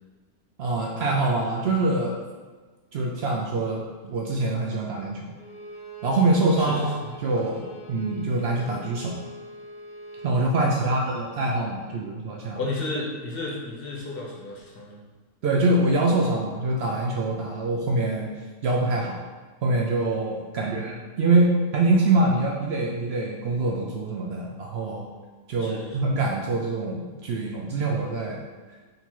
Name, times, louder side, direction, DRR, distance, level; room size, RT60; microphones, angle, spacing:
voice 1, 0.6-2.2 2.9-5.2 6.0-6.9 7.2-9.3 10.2-12.6 15.4-18.3 18.6-19.2 19.6-25.1 25.5-28.4, right 2 dB, 75° right, -1 dB, 0.5 m, -24 dB
Bowed string instrument, 5.4-10.4, right 2 dB, 75° left, 1.2 m, -43 dB
voice 2, 12.5-15.0 20.6-21.0 25.6-26.1, left 2 dB, 45° left, -3 dB, 1.0 m, -33 dB
3.9 x 2.8 x 4.4 m, 1.4 s
omnidirectional pair, 1.6 m